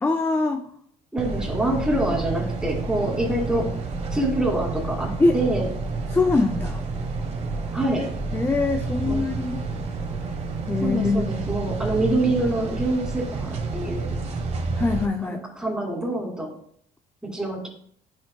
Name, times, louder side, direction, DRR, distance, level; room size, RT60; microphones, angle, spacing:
voice 1, 0.0-0.6 5.2-5.4 6.1-6.9 8.3-9.6 10.7-11.4 14.7-15.4, left 3 dB, 15° left, 5 dB, 0.5 m, -23 dB
voice 2, 1.1-3.7 4.1-5.7 7.7-8.1 9.0-9.3 10.8-14.1 15.2-16.5 17.2-17.7, right 1 dB, 5° right, -2 dB, 2.6 m, -26 dB
sound 1, 1.2-15.1, right 3 dB, 40° right, 1.3 m, -29 dB
10.0 x 6.3 x 2.2 m, 0.64 s
cardioid pair, 110°, 17 cm